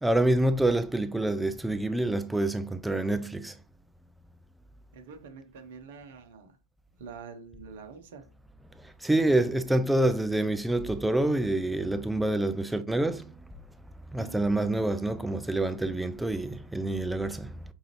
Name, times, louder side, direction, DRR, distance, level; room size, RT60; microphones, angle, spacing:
voice 1, 0.0-3.6 8.8-13.3 14.1-17.6, right 1 dB, 5° right, 0.3 m, -27 dB
voice 2, 4.9-6.6 7.0-8.2 14.2-14.5, right 5 dB, 55° right, 0.7 m, -46 dB
5.5 x 2.5 x 3.0 m
figure-of-eight pair, 90°, 0 cm